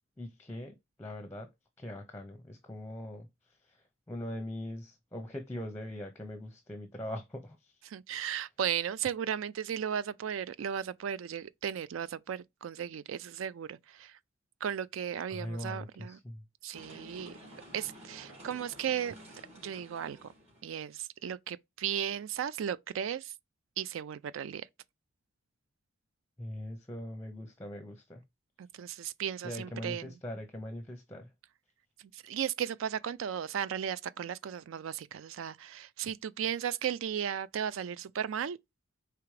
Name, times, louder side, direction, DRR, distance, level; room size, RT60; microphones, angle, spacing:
voice 1, 0.2-1.5 1.8-7.8 15.3-16.4 26.4-28.2 29.4-31.3, left 1 dB, 10° left, 0.6 m, -41 dB
voice 2, 7.9-14.2 14.6-16.2 16.6-17.4 17.7-19.2 19.6-20.3 20.6-23.3 23.8-24.7 28.6-30.1 32.1-38.6, right 8 dB, 75° right, 0.4 m, -35 dB
sound 1, 16.7-20.7, equal, 35° right, 3.3 m, -51 dB
4.8 x 3.4 x 3.1 m
head